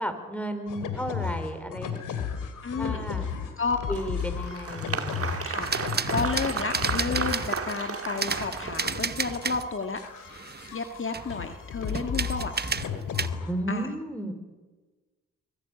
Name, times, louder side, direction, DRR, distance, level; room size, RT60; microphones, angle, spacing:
voice 1, 0.0-2.0 2.8-3.2 3.9-5.4 13.5-14.3, right 1 dB, 5° left, 8 dB, 4.5 m, -33 dB
sound 1, 0.7-13.5, left 7 dB, 85° left, 2.6 m, -35 dB
voice 2, 2.6-3.9 5.4-5.7 6.1-10.2 10.7-12.5 13.7-13.9, left 4 dB, 40° left, 6 dB, 1.9 m, -32 dB
Applause, 3.9-9.2, right 5 dB, 45° right, 2.4 m, -34 dB
sound 2, 5.6-7.8 8.2-9.7 10.0-11.4 11.9-13.3, right 5 dB, 30° right, 1.1 m, -32 dB
24.0 x 16.5 x 8.6 m, 1.3 s
supercardioid pair, 50°, 31 cm